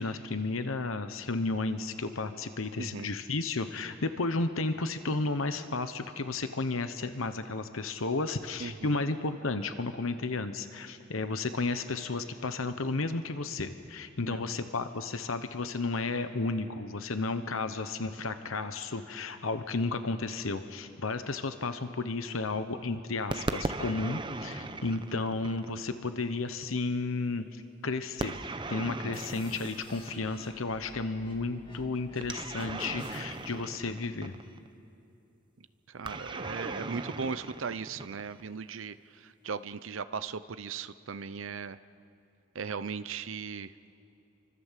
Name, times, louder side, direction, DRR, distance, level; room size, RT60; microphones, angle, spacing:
voice 1, 0.0-28.4 28.7-34.3, left 3 dB, 85° left, 9 dB, 1.0 m, -33 dB
voice 2, 2.8-3.1 8.6-9.0 14.2-14.6 35.9-41.8 42.5-43.7, right 5 dB, 75° right, 12 dB, 0.6 m, -38 dB
sound 1, 23.3-26.0 28.2-30.6 32.2-34.7 36.0-38.5, right 2 dB, 25° right, 0.8 m, -38 dB
sound 2, 29.1-33.5, left 2 dB, 25° left, 2.2 m, -52 dB
29.5 x 25.0 x 7.5 m, 2.7 s
head